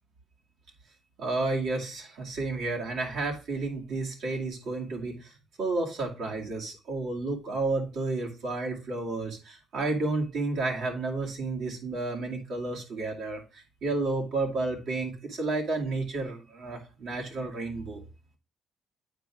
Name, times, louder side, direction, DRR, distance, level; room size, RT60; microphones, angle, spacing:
voice 1, 1.2-18.0, right 3 dB, 80° right, -1 dB, 2.4 m, -31 dB
8.4 x 4.7 x 3.4 m, 0.33 s
cardioid pair, 90°, 0 cm